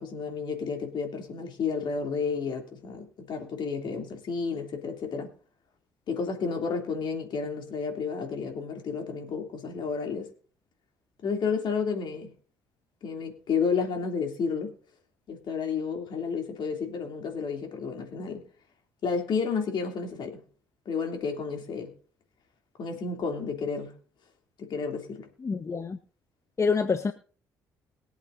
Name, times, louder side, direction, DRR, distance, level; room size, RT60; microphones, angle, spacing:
voice 1, 0.0-5.3 6.1-10.3 11.2-12.3 13.0-14.7 15.3-18.4 19.0-20.4 20.8-21.9 22.8-24.0 24.6-25.3, left 5 dB, 55° left, 2.9 m, -31 dB
voice 2, 25.4-26.0 26.6-27.1, left 5 dB, 30° left, 1.0 m, -26 dB
22.0 x 8.2 x 2.6 m
hypercardioid pair, 50°, 9 cm